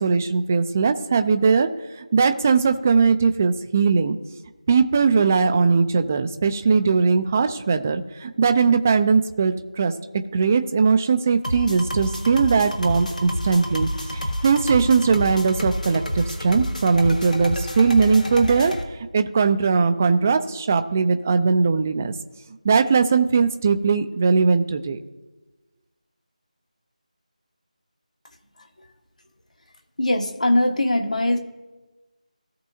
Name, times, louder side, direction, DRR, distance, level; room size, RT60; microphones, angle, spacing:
voice 1, 0.0-1.7 2.1-4.2 4.7-9.9 10.3-18.7 19.1-22.1 22.6-25.0, right 5 dB, 20° right, 8 dB, 0.4 m, -20 dB
sound 1, 11.4-18.8, equal, 85° left, 1.4 m, -29 dB
voice 2, 30.0-31.4, left 1 dB, 65° left, 4 dB, 1.4 m, -21 dB
17.0 x 6.1 x 2.7 m, 1.2 s
figure-of-eight pair, 165°, 4 cm